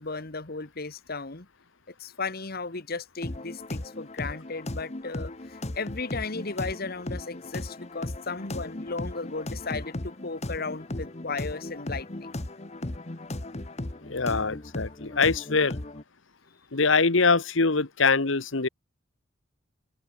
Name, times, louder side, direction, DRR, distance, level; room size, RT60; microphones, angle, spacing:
voice 1, 0.0-1.5 2.0-12.4, left 4 dB, 50° left, 1.5 m, -35 dB
sound 1, 3.2-16.0, left 1 dB, 35° left, 1.2 m, -36 dB
voice 2, 14.1-15.8 16.7-18.7, left 4 dB, 75° left, 1.4 m, -23 dB
head